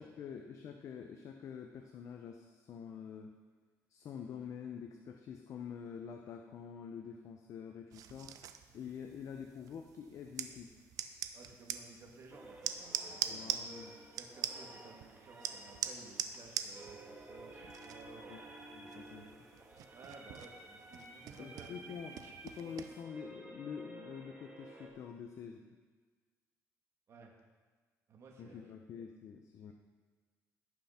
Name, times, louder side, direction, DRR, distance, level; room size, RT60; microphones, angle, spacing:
voice 1, 0.0-3.3 3.9-8.4 8.7-10.8 13.3-13.9 18.3-18.4 18.7-19.2 21.4-22.2 22.4-25.8 28.4-29.7, left 7 dB, 55° left, 4 dB, 0.7 m, -47 dB
sound 1, 7.9-23.0, right 9 dB, 70° right, 0.6 m, -44 dB
voice 2, 11.3-13.7 14.1-18.5 18.8-19.3 19.9-22.8 27.1-27.3 28.1-28.6, right 3 dB, 50° right, 1 dB, 1.8 m, -56 dB
sound 2, 12.3-24.9, right 2 dB, 25° right, 1.6 m, -53 dB
17.0 x 5.8 x 4.3 m, 1.5 s
cardioid pair, 130°, 6 cm